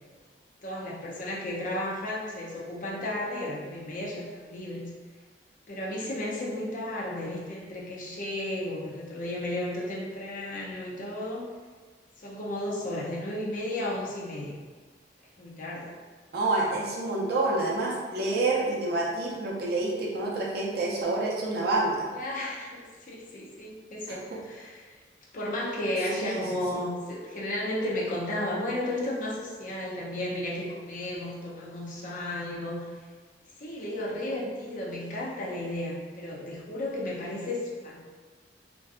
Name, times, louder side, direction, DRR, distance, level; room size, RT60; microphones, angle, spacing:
voice 1, 0.6-4.9 5.7-11.5 12.2-14.6 15.4-15.9 22.1-24.9 25.3-32.9 33.6-38.0, left 1 dB, 50° left, -4 dB, 0.5 m, -33 dB
voice 2, 16.3-22.1 26.1-26.4, right 2 dB, 60° right, -3 dB, 0.5 m, -28 dB
2.7 x 2.2 x 2.4 m, 1.5 s
head